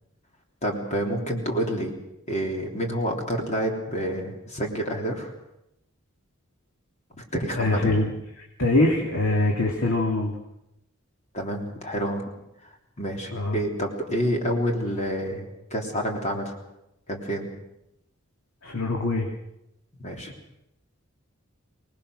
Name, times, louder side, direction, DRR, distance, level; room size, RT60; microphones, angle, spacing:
voice 1, 0.6-1.9 2.3-5.3 7.2-8.0 11.3-12.2 13.0-15.5 15.7-16.6 17.1-17.5 20.0-20.3, equal, 35° left, 1 dB, 3.5 m, -28 dB
voice 2, 7.5-8.1 8.6-10.4 13.3-13.6 18.6-19.3, left 2 dB, 75° left, 0 dB, 2.7 m, -23 dB
25.5 x 19.5 x 6.5 m, 0.86 s
head